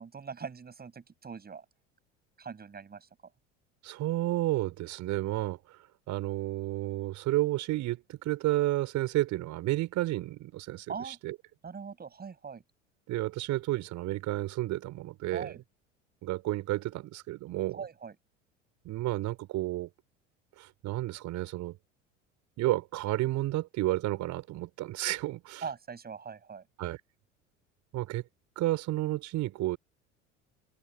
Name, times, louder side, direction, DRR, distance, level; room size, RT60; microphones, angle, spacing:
voice 1, 0.0-1.7 2.4-3.1 10.9-11.2 11.6-12.6 15.3-15.6 17.7-18.2 25.6-26.7, right 6 dB, 25° right, 7.2 m, -41 dB
voice 2, 3.8-11.3 13.1-15.5 16.2-17.8 18.8-19.9 20.6-21.8 22.6-25.7 26.8-27.0 27.9-28.2 28.5-29.8, right 16 dB, 50° right, 4.8 m, -31 dB
figure-of-eight pair, 70°, 37 cm